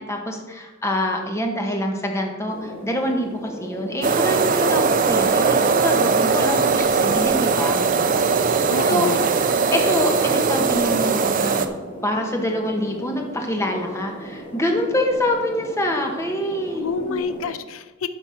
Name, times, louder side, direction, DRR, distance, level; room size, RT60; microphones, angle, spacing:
voice 1, 0.0-7.8 8.9-9.1 9.7-11.7 12.0-17.2, left 1 dB, 15° left, 1 dB, 1.3 m, -25 dB
sound 1, 2.5-17.6, equal, 35° left, 2.2 m, -38 dB
sound 2, 4.0-11.7, right 5 dB, 40° right, 0.6 m, -20 dB
voice 2, 8.7-9.3 16.7-18.1, left 5 dB, 75° left, 11 dB, 0.5 m, -28 dB
11.5 x 4.5 x 5.8 m, 1.2 s
head